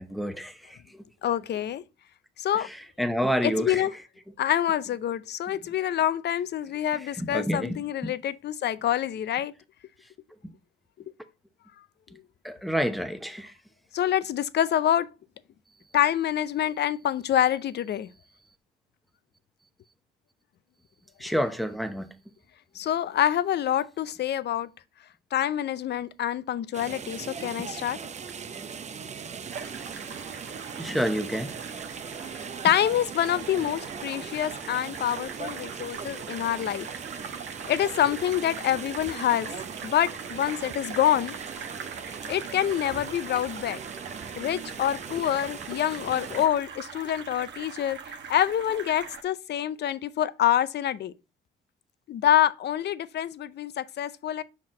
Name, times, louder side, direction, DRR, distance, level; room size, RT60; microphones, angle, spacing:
voice 1, 0.0-1.1 3.0-3.8 7.2-8.1 12.4-13.5 21.2-22.1 30.8-31.5, equal, ahead, 0.9 m, -29 dB
voice 2, 1.2-1.8 2.4-2.7 3.4-3.9 4.4-9.5 13.9-15.1 15.9-18.1 22.7-24.7 25.3-28.0 32.6-36.9 37.7-39.5 39.8-41.3 42.3-43.8 44.4-48.0 48.3-51.1 52.1-54.4, left 11 dB, 60° left, 0.6 m, -26 dB
sound 1, 26.7-46.5, right 6 dB, 35° right, 0.6 m, -39 dB
sound 2, 29.5-49.2, right 6 dB, 65° right, 1.2 m, -42 dB
5.7 x 4.5 x 3.7 m
cardioid pair, 90°, 20 cm